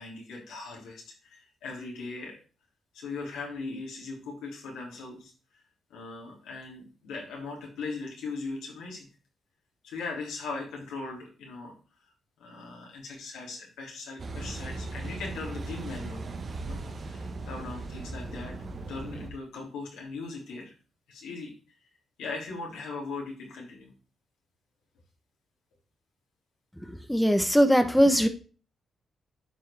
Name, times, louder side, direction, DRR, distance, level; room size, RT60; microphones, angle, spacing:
voice 1, 0.0-2.4 2.9-5.3 5.9-9.1 9.8-11.7 12.4-16.2 16.6-18.5 18.9-20.7 21.1-21.5 22.2-23.9, left 3 dB, 85° left, -1 dB, 2.8 m, -39 dB
Car passing by / Idling / Accelerating revving vroom, 14.2-19.3, right 3 dB, 50° right, 1.2 m, -38 dB
voice 2, 26.8-28.3, equal, 5° left, 8 dB, 1.0 m, -21 dB
11.0 x 4.6 x 3.4 m, 0.37 s
supercardioid pair, 55°, 0 cm